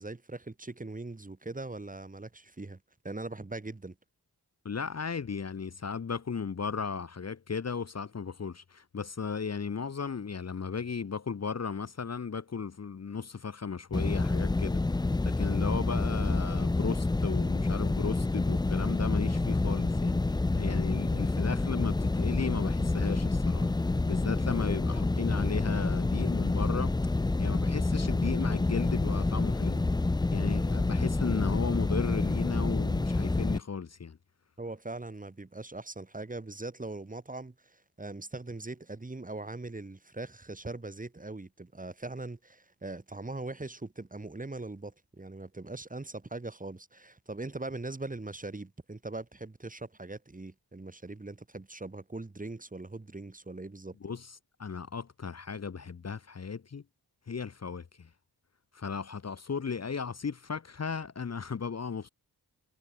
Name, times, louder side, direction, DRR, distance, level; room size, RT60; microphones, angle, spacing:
voice 1, 0.0-4.0 34.6-54.0, right 2 dB, 20° right, 1.8 m, -41 dB
voice 2, 4.6-23.7 24.0-27.0 27.4-29.8 30.3-34.2 54.0-54.3 54.6-56.8 57.3-58.1 58.7-62.1, left 6 dB, 40° left, 1.1 m, -35 dB
sound 1, 13.9-33.6, left 2 dB, 10° left, 0.5 m, -28 dB
cardioid pair, 70°, 39 cm